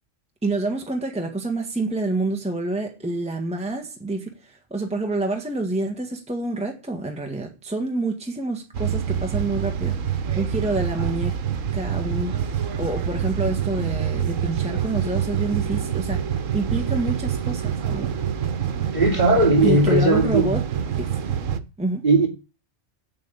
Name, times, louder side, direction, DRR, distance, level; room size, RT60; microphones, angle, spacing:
voice 1, 0.4-11.3 11.7-18.1 19.6-20.6 21.0-21.2 21.8-22.0, right 2 dB, 5° right, 1.5 m, -28 dB
sound 1, 8.7-21.6, right 8 dB, 85° right, 1.3 m, -26 dB
voice 2, 18.9-20.6 22.0-22.3, right 2 dB, 35° right, 2.7 m, -18 dB
7.9 x 7.5 x 8.3 m
omnidirectional pair, 1.3 m